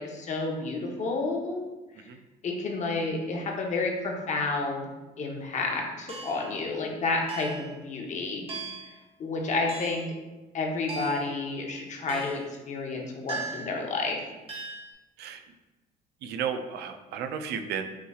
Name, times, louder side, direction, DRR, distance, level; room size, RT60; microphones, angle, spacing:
voice 1, 0.0-1.8 2.4-4.8 5.2-8.5 9.2-10.0 10.5-12.4 12.7-14.2, left 3 dB, 45° left, 1 dB, 0.9 m, -30 dB
sound 1, 6.1-6.5 7.3-7.7 8.5-8.9 9.7-10.1 10.9-11.3 12.1-12.5 13.3-13.8 14.5-14.9, right 3 dB, 35° right, 0.9 m, -38 dB
voice 2, 16.2-17.9, right 7 dB, 75° right, 6 dB, 0.5 m, -33 dB
5.7 x 3.1 x 2.4 m, 1.1 s
cardioid pair, 110°, 17 cm